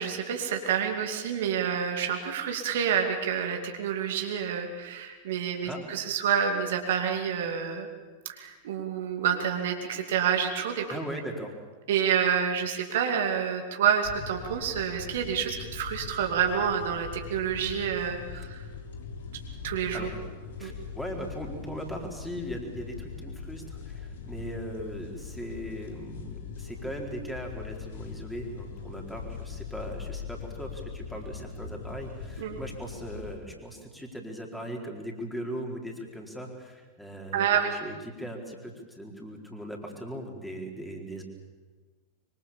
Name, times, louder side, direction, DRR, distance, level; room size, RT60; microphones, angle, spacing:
voice 1, 0.0-7.9 8.3-10.9 11.9-18.6 19.6-20.1 20.6-20.7 32.4-32.6 37.3-37.8, right 8 dB, 55° right, 4 dB, 2.6 m, -28 dB
voice 2, 10.9-11.6 18.3-18.5 19.9-20.1 20.6-41.2, equal, 5° left, 1 dB, 4.4 m, -39 dB
sound 1, 14.0-33.3, left 5 dB, 60° left, 3.6 m, -41 dB
25.0 x 24.0 x 7.2 m, 1.4 s
figure-of-eight pair, 90°, 0 cm